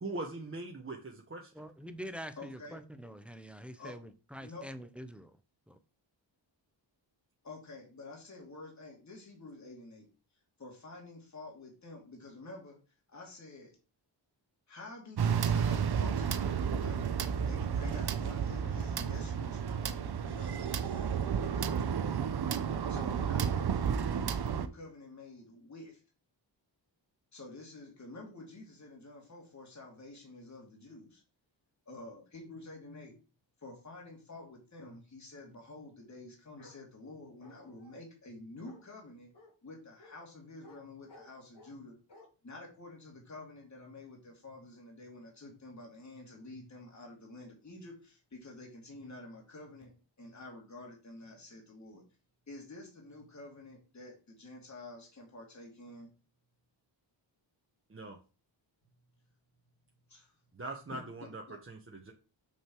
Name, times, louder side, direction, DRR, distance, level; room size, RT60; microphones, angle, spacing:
voice 1, 0.0-1.5 57.9-58.2 60.5-62.1, right 2 dB, 25° right, 1.2 m, -41 dB
voice 2, 1.5-5.4 5.7-5.8, equal, 5° right, 0.7 m, -45 dB
voice 3, 2.4-2.8 3.8-4.0 4.4-4.7 7.4-10.1 10.6-12.8 13.1-13.8 14.7-17.2 17.4-23.8 24.1-26.0 27.3-31.2 31.9-33.1 33.6-39.3 39.6-41.9 42.4-49.9 50.2-52.0 52.5-56.1 60.1-60.3 60.9-61.0 61.5-61.6, left 2 dB, 35° left, 2.7 m, -49 dB
sound 1, 15.2-24.7, right 7 dB, 55° right, 0.8 m, -32 dB
Bark, 36.6-36.8 37.4-38.0 38.6-38.8 39.3-39.5 40.0-40.2 40.6-40.8 41.1-41.8 42.1-42.3, left 1 dB, 60° left, 3.2 m, -56 dB
6.7 x 6.3 x 4.6 m
wide cardioid pair, 135°, 46 cm